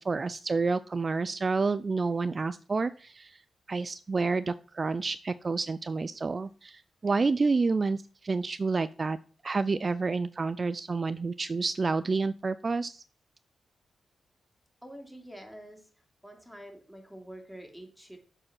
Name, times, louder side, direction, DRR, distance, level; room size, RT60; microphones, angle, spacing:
voice 1, 0.0-3.4 3.7-9.2 9.4-13.0, right 4 dB, 40° right, 14 dB, 0.3 m, -29 dB
voice 2, 14.8-15.9 16.2-18.2, equal, ahead, 3 dB, 2.8 m, -46 dB
7.5 x 4.9 x 6.0 m, 0.41 s
cardioid pair, 55°, 0 cm